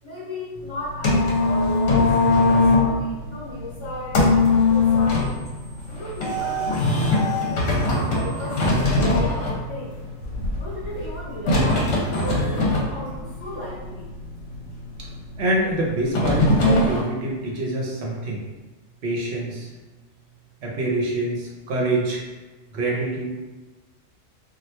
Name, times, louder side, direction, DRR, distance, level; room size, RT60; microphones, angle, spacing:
voice 1, 0.0-2.1 2.4-4.2 4.5-5.4 5.9-10.0 10.6-14.1 18.2-18.3, left 1 dB, 20° left, -10 dB, 1.3 m, -35 dB
sound 1, 0.6-17.0, left 2 dB, 70° left, 1.0 m, -22 dB
voice 2, 15.4-18.4 19.0-19.7 20.6-22.2 22.7-23.3, right 1 dB, 60° right, -3 dB, 0.9 m, -25 dB
2.8 x 2.4 x 3.1 m, 1.2 s
omnidirectional pair, 1.4 m